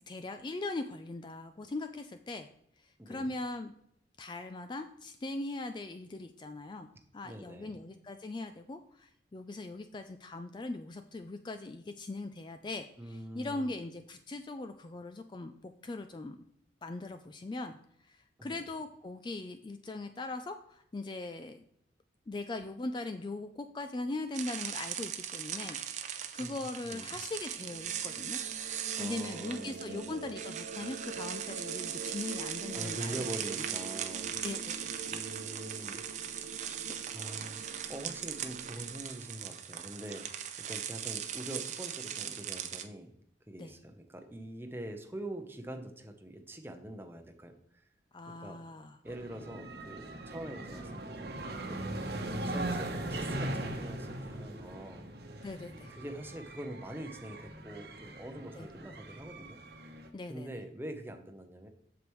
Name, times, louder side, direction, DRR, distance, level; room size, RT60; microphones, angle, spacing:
voice 1, 0.1-2.5 2.8-3.7 4.2-6.9 7.1-16.4 16.8-17.8 18.1-21.6 22.3-28.4 29.0-33.1 34.4-35.0 43.6-43.8 48.1-49.0 55.4-55.9 58.6-58.7 60.1-60.5, left 2 dB, 25° left, 8 dB, 0.3 m, -40 dB
voice 2, 3.0-3.3 7.2-7.8 13.0-13.7 18.4-18.6 26.4-26.6 26.8-27.2 28.9-30.3 32.7-34.4 35.1-36.0 36.4-43.1 43.5-47.8 48.3-48.6 49.0-51.8 52.4-55.5 55.9-60.0 60.3-61.7, right 1 dB, 15° right, 5 dB, 0.8 m, -44 dB
sound 1, 24.3-42.9, right 9 dB, 40° right, 0.6 m, -39 dB
sound 2, 27.1-39.0, right 4 dB, 80° right, 0.7 m, -46 dB
sound 3, 49.1-60.1, right 1 dB, 60° right, 1.0 m, -40 dB
7.9 x 6.9 x 3.1 m, 0.74 s
head